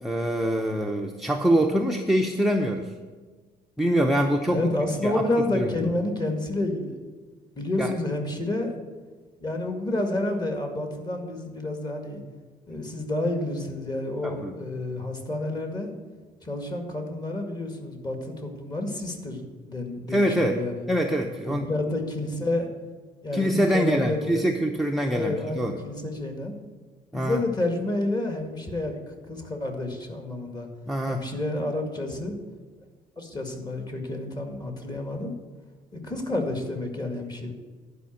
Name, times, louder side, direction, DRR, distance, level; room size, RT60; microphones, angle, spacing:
voice 1, 0.0-2.9 3.8-4.6 5.0-5.2 5.5-5.7 7.8-7.9 14.2-14.5 20.1-20.6 20.9-21.6 23.3-25.8 27.1-27.4 30.9-31.2, equal, ahead, 1 dB, 0.7 m, -24 dB
voice 2, 4.5-7.0 7.6-8.7 9.4-12.2 12.7-15.9 16.4-20.8 21.4-22.7 23.2-24.8 25.1-26.6 27.1-30.7 31.1-32.4 33.2-35.3 35.9-37.5, left 2 dB, 25° left, 4 dB, 2.0 m, -29 dB
11.0 x 5.1 x 7.7 m, 1.4 s
cardioid pair, 110°, 17 cm